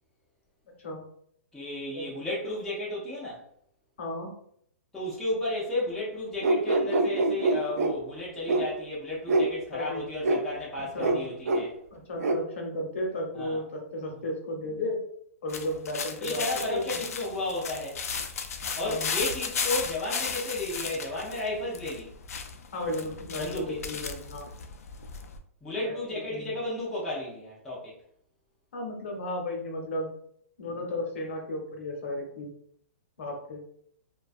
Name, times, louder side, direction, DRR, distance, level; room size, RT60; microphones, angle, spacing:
voice 1, 1.5-3.4 4.9-11.8 13.3-13.6 16.2-18.0 18.7-22.1 23.4-23.8 25.6-27.9, left 1 dB, 5° left, -8 dB, 0.3 m, -33 dB
voice 2, 4.0-4.3 9.7-10.0 10.8-11.3 11.9-15.0 15.4-17.0 18.8-19.1 22.7-24.5 26.3-26.5 28.7-30.1 30.6-32.5 33.2-33.6, left 1 dB, 55° left, 0 dB, 0.8 m, -34 dB
sound 1, 6.4-7.9 8.5-8.7 9.3-9.5 10.2-10.4 11.0-11.2 11.5-11.7 12.2-12.4, right 2 dB, 85° right, 0.4 m, -24 dB
sound 2, 15.5-25.4, left 6 dB, 85° left, 0.4 m, -35 dB
2.4 x 2.2 x 2.4 m, 0.66 s
hypercardioid pair, 175°, 8 cm